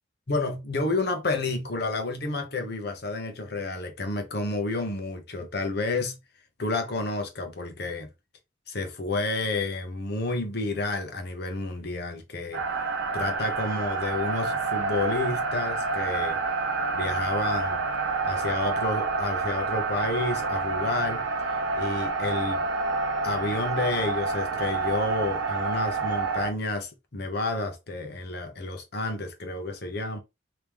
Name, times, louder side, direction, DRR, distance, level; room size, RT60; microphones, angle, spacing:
voice 1, 0.3-6.2 6.6-8.1 8.7-12.6 13.1-16.4 16.9-17.9 18.2-21.2 21.7-22.7 23.2-30.2, left 2 dB, 60° left, 1.0 m, -30 dB
sound 1, 12.5-26.5, right 3 dB, 85° right, 0.8 m, -28 dB
3.5 x 3.0 x 3.0 m
head